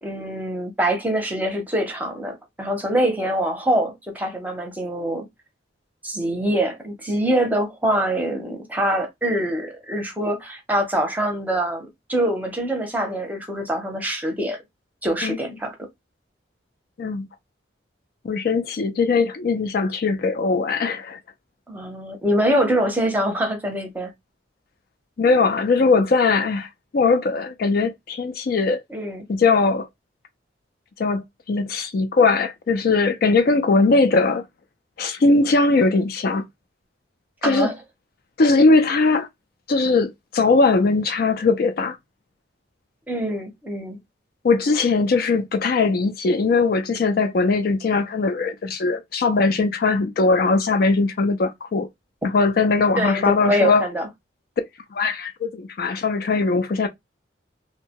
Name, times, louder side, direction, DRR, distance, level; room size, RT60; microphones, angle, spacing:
voice 1, 0.0-5.2 6.0-14.6 15.0-15.8 21.7-24.1 28.9-29.2 33.7-33.9 37.4-37.7 43.1-44.0 53.0-54.1, right 1 dB, 10° right, 0.7 m, -24 dB
voice 2, 18.2-21.2 25.2-26.7 26.9-28.8 29.3-29.9 31.0-34.4 35.0-36.5 37.4-37.7 38.4-39.3 39.7-42.0 44.4-51.9 52.3-53.9 54.9-56.9, left 3 dB, 50° left, 0.4 m, -20 dB
2.6 x 2.2 x 2.8 m
head